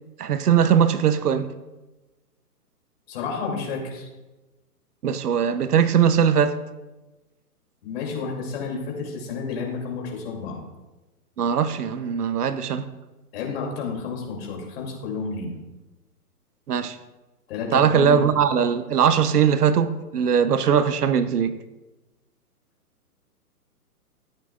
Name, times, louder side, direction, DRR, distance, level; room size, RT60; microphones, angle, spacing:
voice 1, 0.2-1.5 5.0-6.6 11.4-12.9 16.7-17.0 17.7-21.5, right 8 dB, 75° right, 0.9 m, -20 dB
voice 2, 3.1-4.1 7.8-10.6 13.3-15.5 17.5-18.3, left 5 dB, 40° left, 2.9 m, -31 dB
14.5 x 8.7 x 2.5 m
hypercardioid pair, 150°, 47 cm